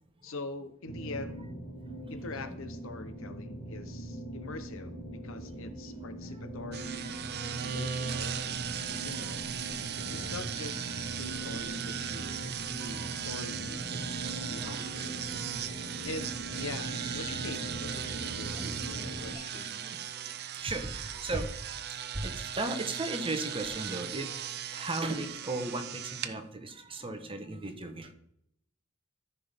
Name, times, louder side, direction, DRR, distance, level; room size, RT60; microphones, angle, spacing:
voice 1, 0.2-1.5 2.1-5.0 5.2-7.0 7.6-9.5 10.1-10.9 11.2-14.2 14.5-15.2 16.0-19.8, left 2 dB, 65° left, 10 dB, 0.9 m, -43 dB
sound 1, 0.9-19.3, right 1 dB, 50° left, 3.0 m, -41 dB
voice 2, 2.0-2.6 7.2-7.7 8.9-9.3 11.4-11.9 12.8-13.2 14.2-15.0 15.3-15.4 15.8-16.1 18.5-19.3 19.5-20.4 20.6-28.1, right 2 dB, 25° right, 6 dB, 1.1 m, -38 dB
sound 2, 6.7-26.3, right 9 dB, 50° right, 0.6 m, -38 dB
sound 3, 9.1-9.3 9.7-11.3, equal, 15° left, 2.9 m, -48 dB
14.0 x 5.8 x 3.5 m, 0.73 s
head